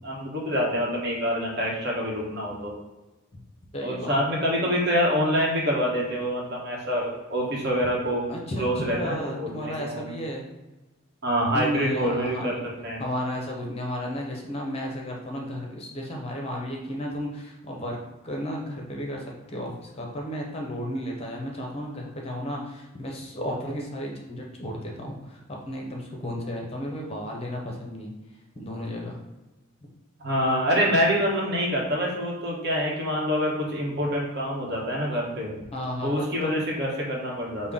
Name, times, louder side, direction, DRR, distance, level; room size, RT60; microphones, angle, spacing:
voice 1, 0.0-2.7 3.8-8.2 8.6-10.0 11.2-13.0 30.2-35.5 36.0-37.7, equal, 50° right, -3 dB, 1.1 m, -26 dB
voice 2, 3.7-4.2 4.5-4.7 8.3-10.4 11.5-12.5 13.0-18.0 18.2-28.1 28.6-29.2 35.7-36.1 36.4-36.6 37.6-37.7, equal, 30° left, -1 dB, 0.6 m, -33 dB
5.3 x 2.1 x 3.6 m, 1.1 s
head